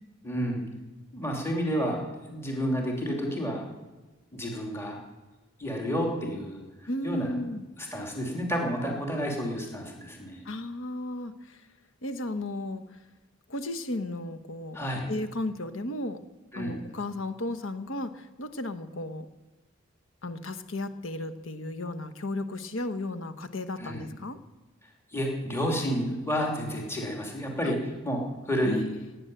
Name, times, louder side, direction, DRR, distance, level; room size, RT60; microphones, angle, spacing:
voice 1, 0.2-0.6 1.1-2.0 2.3-3.6 4.3-5.0 5.6-6.6 7.0-7.3 7.8-10.4 14.7-15.1 16.5-16.8 23.8-24.1 25.1-28.8, equal, 15° left, 0 dB, 2.9 m, -30 dB
voice 2, 6.9-7.6 10.4-11.7 12.0-13.0 13.5-14.8 15.1-16.2 16.5-19.3 20.2-24.4 27.6-27.7 28.6-29.1, left 1 dB, 70° left, 10 dB, 1.2 m, -34 dB
17.5 x 9.7 x 7.8 m, 1.2 s
head